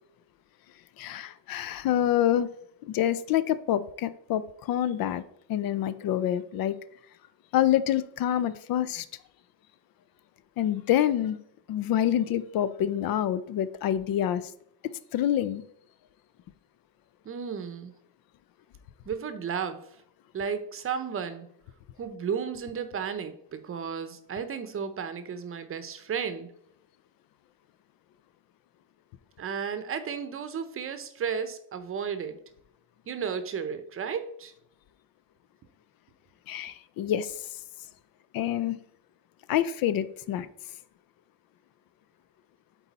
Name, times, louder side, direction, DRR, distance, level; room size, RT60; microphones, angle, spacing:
voice 1, 1.0-2.5 2.8-5.2 5.5-6.8 7.5-9.1 10.6-11.4 11.7-14.5 15.1-15.6 36.5-37.5 38.3-38.8 39.5-40.5, left 11 dB, 65° left, 15 dB, 0.5 m, -27 dB
voice 2, 17.2-17.9 19.1-19.8 20.3-21.5 22.0-26.5 29.4-32.4 33.1-34.5, right 7 dB, 35° right, 11 dB, 0.7 m, -33 dB
8.2 x 4.1 x 4.1 m, 0.70 s
cardioid pair, 155°, 38 cm